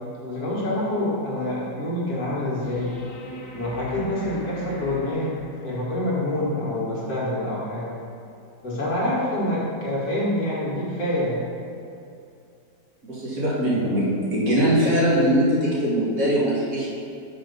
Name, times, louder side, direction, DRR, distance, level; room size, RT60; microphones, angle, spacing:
voice 1, 0.2-2.9 3.5-5.3 5.6-8.0 8.6-11.4, left 1 dB, 60° left, -7 dB, 2.1 m, -26 dB
sound 1, 2.6-5.9 8.6-8.7, left 1 dB, 85° left, 2.1 m, -41 dB
voice 2, 13.0-16.9, equal, 55° right, -8 dB, 2.2 m, -21 dB
6.2 x 5.4 x 5.4 m, 2.5 s
omnidirectional pair, 1.8 m